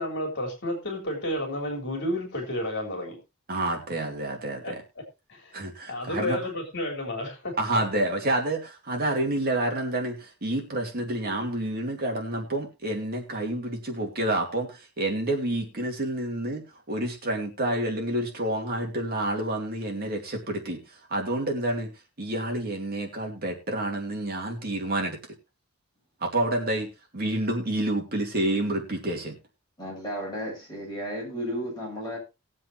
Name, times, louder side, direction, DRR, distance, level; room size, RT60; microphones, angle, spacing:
voice 1, 0.0-3.2 4.6-4.7 5.3-5.6 5.9-7.5, left 1 dB, 55° left, 2 dB, 3.5 m, -31 dB
voice 2, 3.5-4.8 5.5-6.4 7.6-16.6 16.9-21.9 22.2-25.2 26.2-29.3, right 1 dB, 45° right, 1 dB, 2.7 m, -29 dB
voice 3, 29.8-32.2, equal, 20° left, -4 dB, 8.0 m, -33 dB
20.0 x 7.6 x 2.9 m, 0.26 s
head